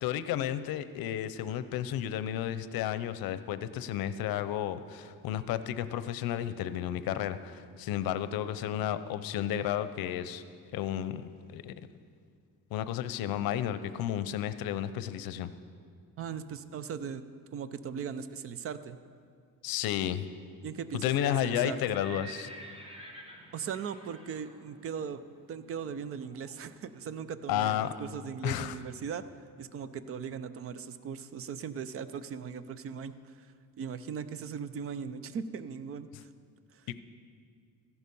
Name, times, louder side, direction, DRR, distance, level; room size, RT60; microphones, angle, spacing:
voice 1, 0.0-10.4 10.7-11.7 12.7-15.5 19.6-20.3 20.9-22.5 27.5-27.9 28.4-28.8, left 11 dB, 80° left, 13 dB, 0.7 m, -32 dB
voice 2, 16.2-17.2 17.5-19.0 20.6-21.8 23.5-25.2 25.5-29.2 29.6-33.5 33.8-36.3 36.7-36.9, right 7 dB, 40° right, 13 dB, 0.5 m, -39 dB
Livestock farm animals working animals, 21.0-26.8, right 1 dB, 15° right, 1.2 m, -50 dB
14.5 x 11.0 x 5.4 m, 2.2 s
cardioid pair, 165°, 35 cm